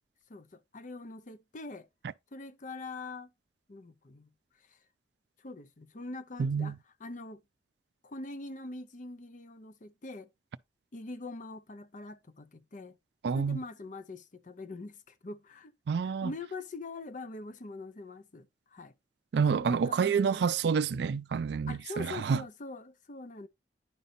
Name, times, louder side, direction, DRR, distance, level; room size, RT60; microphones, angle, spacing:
voice 1, 0.3-1.9 2.3-3.3 3.7-4.3 4.6-4.8 5.4-7.4 8.0-10.3 10.9-13.0 13.3-15.7 16.0-18.9 19.5-20.4 21.7-23.5, left 2 dB, 45° left, 0.6 m, -43 dB
voice 2, 6.4-6.8 13.2-13.6 15.9-16.3 19.3-22.4, right 6 dB, 70° right, 0.4 m, -28 dB
10.0 x 5.4 x 2.6 m
head